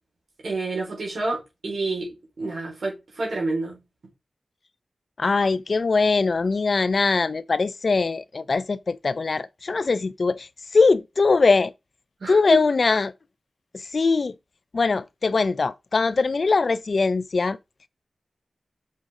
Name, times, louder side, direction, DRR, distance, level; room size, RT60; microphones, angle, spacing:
voice 1, 0.4-2.1 2.4-3.8 12.2-12.4, right 2 dB, 75° right, 4.0 m, -28 dB
voice 2, 5.2-11.7 12.3-13.1 13.7-14.3 14.7-17.6, left 4 dB, 60° left, 0.4 m, -21 dB
6.4 x 5.2 x 3.7 m
cardioid pair, 55°, 0 cm